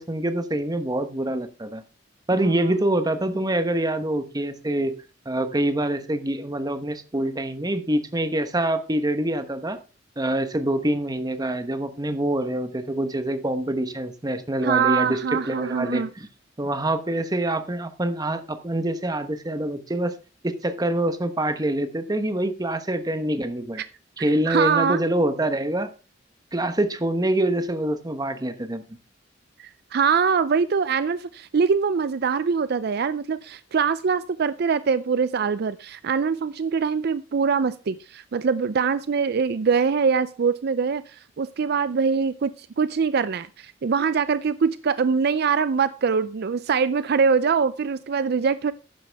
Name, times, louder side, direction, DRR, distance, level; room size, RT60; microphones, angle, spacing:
voice 1, 0.0-1.8 2.3-4.9 5.2-9.8 10.2-16.3 16.6-20.1 20.4-23.8 24.2-25.9 26.5-28.8, right 1 dB, 20° right, 9 dB, 1.1 m, -25 dB
voice 2, 14.6-16.1 23.8-23.9 24.5-25.0 29.6-48.7, right 5 dB, 55° right, 15 dB, 0.4 m, -23 dB
12.0 x 9.7 x 3.5 m, 0.33 s
head